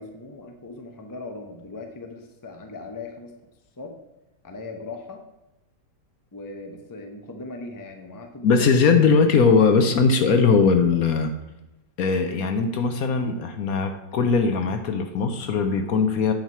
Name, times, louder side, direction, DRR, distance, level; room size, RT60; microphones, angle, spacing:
voice 1, 0.0-3.3 3.8-4.0 4.4-5.2 6.3-8.6 9.7-9.8, left 3 dB, 20° left, 4 dB, 0.5 m, -39 dB
voice 2, 8.4-11.3 12.0-16.3, left 5 dB, 65° left, 7 dB, 1.0 m, -20 dB
8.9 x 4.7 x 5.6 m, 0.97 s
omnidirectional pair, 1.9 m